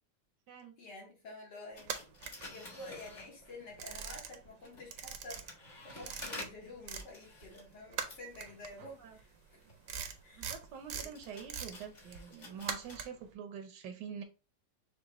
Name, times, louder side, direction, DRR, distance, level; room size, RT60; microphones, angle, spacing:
voice 1, 0.8-9.3 10.2-10.5 10.9-11.1, left 2 dB, 75° left, 2.5 m, -50 dB
sound 1, 1.8-3.8 4.5-13.0, left 2 dB, 45° left, 1.7 m, -51 dB
sound 2, 1.8-3.1 3.4-4.6 4.8-7.1 7.4-13.3, right 7 dB, 65° right, 1.0 m, -42 dB
voice 2, 10.3-14.2, right 7 dB, 85° right, 1.5 m, -46 dB
6.1 x 2.4 x 3.0 m
omnidirectional pair, 1.9 m